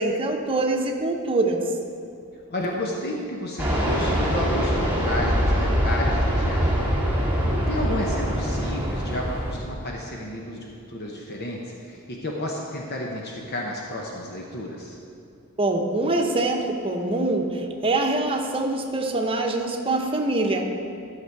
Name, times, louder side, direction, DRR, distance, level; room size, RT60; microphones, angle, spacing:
voice 1, 0.0-1.6 15.6-20.7, right 2 dB, 25° right, 2 dB, 0.9 m, -24 dB
voice 2, 2.5-6.9 7.7-15.0, left 1 dB, 50° left, -1 dB, 0.9 m, -31 dB
Fixed-wing aircraft airplane, 3.6-9.6, equal, 10° right, 2.0 m, -23 dB
13.0 x 6.7 x 4.7 m, 2.4 s
head